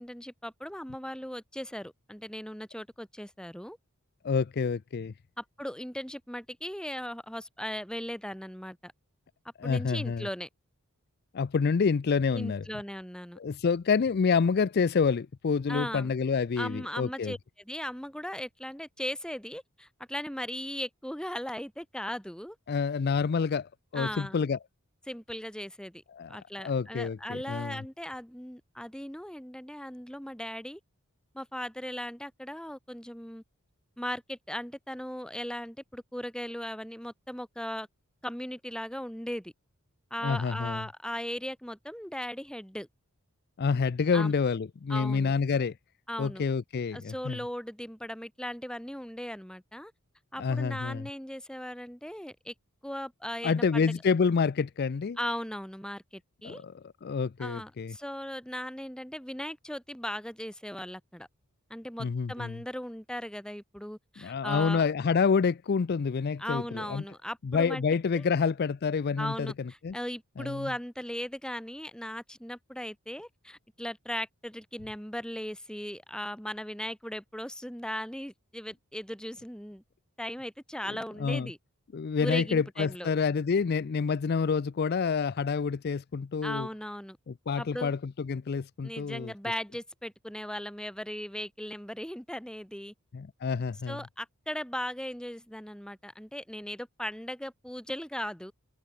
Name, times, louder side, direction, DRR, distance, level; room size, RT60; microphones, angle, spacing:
voice 1, 0.0-3.8 5.4-8.9 9.6-10.5 12.3-13.4 15.7-16.1 16.6-17.4 17.6-22.6 23.9-24.4 25.1-26.0 26.3-30.8 31.3-33.4 34.0-37.9 38.2-39.5 40.1-42.9 44.1-44.3 44.9-45.3 46.1-46.4 46.9-49.9 50.3-52.5 52.8-53.9 55.2-56.6 57.4-61.3 61.7-64.8 66.4-67.8 68.1-68.2 69.2-79.8 80.2-81.6 82.2-83.1 86.4-87.2 87.6-87.9 88.8-92.9 93.9-98.5, equal, 5° left, 2.7 m, -38 dB
voice 2, 4.2-5.1 9.6-10.3 11.3-12.6 13.4-17.3 22.7-24.6 26.1-26.4 26.6-27.8 40.2-40.8 43.6-45.7 46.2-47.4 50.4-51.0 53.4-55.2 56.4-56.7 57.0-57.9 62.0-62.6 64.2-67.0 67.4-69.5 69.8-70.0 70.4-70.7 81.2-81.5 81.9-86.7 87.3-89.3 93.1-94.0, left 5 dB, 45° left, 0.4 m, -28 dB
head